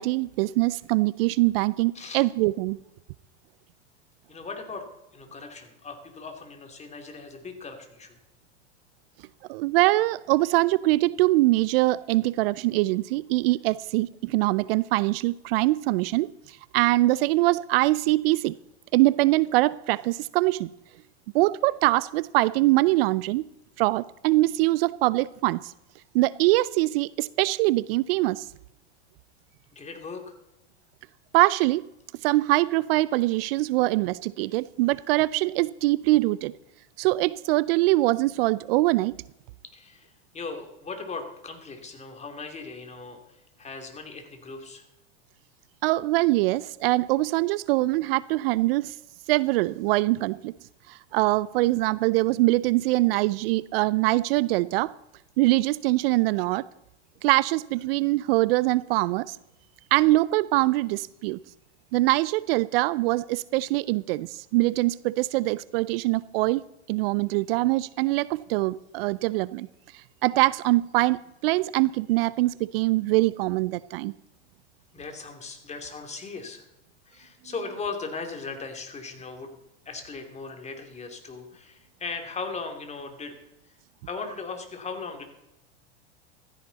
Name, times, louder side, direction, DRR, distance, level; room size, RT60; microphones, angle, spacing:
voice 1, 0.0-2.8 9.5-18.6 18.9-20.7 21.3-23.5 23.8-25.7 26.1-28.5 31.3-31.9 32.2-36.5 37.0-39.2 45.8-49.0 49.3-50.5 50.9-54.9 55.4-56.6 57.2-59.4 59.9-61.4 61.9-66.6 66.9-69.7 70.2-74.1, right 19 dB, 60° right, 19 dB, 0.5 m, -23 dB
voice 2, 4.3-4.8 5.1-8.2 29.7-30.4 39.7-44.9 74.9-76.7 77.1-79.5 79.8-83.4 84.1-85.2, left 4 dB, 20° left, 5 dB, 2.8 m, -38 dB
16.0 x 13.5 x 4.1 m, 0.89 s
hypercardioid pair, 110°, 34 cm